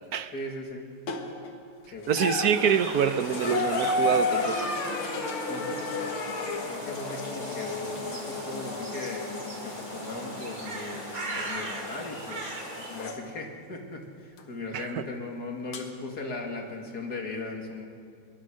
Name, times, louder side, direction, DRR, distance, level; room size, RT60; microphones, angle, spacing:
voice 1, 0.3-0.9 1.9-2.1 5.5-5.8 6.6-17.9, left 2 dB, 50° left, 2 dB, 2.8 m, -38 dB
sound 1, 1.1-1.5 2.0-13.2 14.4-14.5 15.7-15.8, left 3 dB, 85° left, 2.5 m, -33 dB
voice 2, 2.1-4.7 14.7-14.9, right 8 dB, 60° right, 11 dB, 1.2 m, -26 dB
sound 2, 2.5-13.1, right 2 dB, 40° right, 3.0 m, -39 dB
22.5 x 22.0 x 6.4 m, 2.2 s
omnidirectional pair, 2.3 m